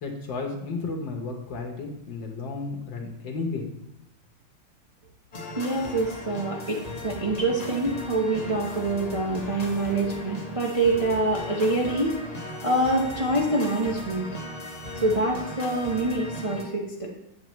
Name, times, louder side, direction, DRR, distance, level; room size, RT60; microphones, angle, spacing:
voice 1, 0.0-3.7, left 3 dB, 70° left, 1 dB, 1.7 m, -33 dB
sound 1, 5.3-16.6, left 1 dB, 30° left, 0.8 m, -37 dB
voice 2, 5.6-12.1 12.6-14.3 14.9-17.1, right 2 dB, 55° right, -2 dB, 0.3 m, -25 dB
7.9 x 7.8 x 3.0 m, 0.86 s
omnidirectional pair, 2.1 m